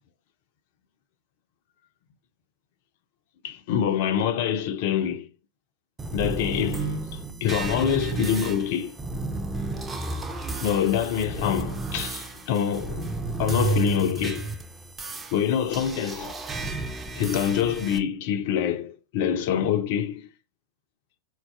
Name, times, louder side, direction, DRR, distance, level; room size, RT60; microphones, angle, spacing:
voice 1, 3.4-5.3 6.1-9.0 10.6-14.5 15.3-16.3 17.2-20.3, left 9 dB, 50° left, 0.3 m, -26 dB
sound 1, 6.0-18.0, right 3 dB, 15° right, 0.4 m, -32 dB
3.8 x 2.2 x 2.3 m
figure-of-eight pair, 90°, 0 cm